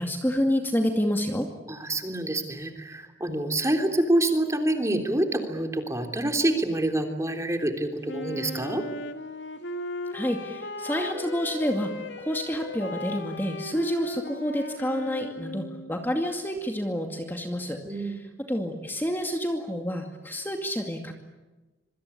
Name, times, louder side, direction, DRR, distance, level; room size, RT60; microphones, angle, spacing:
voice 1, 0.0-1.5 10.1-11.9 12.2-18.1 18.5-21.1, equal, 10° left, 3 dB, 2.3 m, -28 dB
voice 2, 1.7-8.8 17.8-18.2, right 1 dB, 15° right, 5 dB, 3.4 m, -27 dB
Wind instrument woodwind instrument, 8.0-16.0, left 1 dB, 85° left, 2.7 m, -36 dB
26.5 x 25.0 x 8.7 m, 1.2 s
head